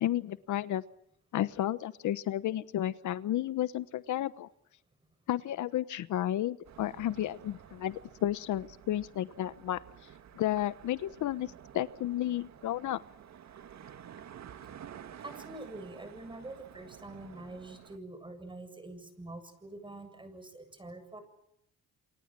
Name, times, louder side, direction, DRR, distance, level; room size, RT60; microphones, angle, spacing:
voice 1, 0.0-0.8 1.3-4.5 5.3-9.8 10.3-13.0, left 12 dB, 75° left, 15 dB, 1.0 m, -32 dB
sound 1, 6.6-18.0, right 9 dB, 65° right, 2.0 m, -51 dB
voice 2, 15.2-21.2, right 2 dB, 15° right, 10 dB, 7.6 m, -45 dB
28.5 x 25.0 x 7.5 m, 0.78 s
cardioid pair, 90°, 30 cm